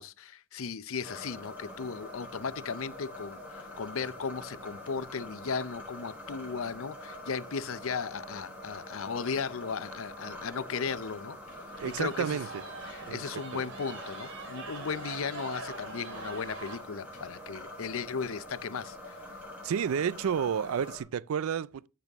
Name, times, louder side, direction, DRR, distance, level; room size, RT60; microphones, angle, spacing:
voice 1, 0.0-11.4 11.9-12.4 12.9-19.4, left 5 dB, 70° left, 0.6 m, -36 dB
sound 1, 1.0-21.0, left 1 dB, 10° right, 4.3 m, -45 dB
sound 2, 1.1-1.6 2.1-2.2 2.5-3.1 6.3-6.4 7.5-7.6 7.9-8.2 8.7-8.8 9.5-9.6 9.9-10.0 10.4-10.9 11.4-16.8, right 3 dB, 60° right, 3.5 m, -45 dB
Sliding door / Slam, 10.8-17.5, left 2 dB, 35° left, 3.0 m, -60 dB
voice 2, 11.8-12.6 13.1-13.6 19.6-21.9, right 7 dB, 75° right, 0.4 m, -31 dB
13.5 x 6.9 x 3.5 m
head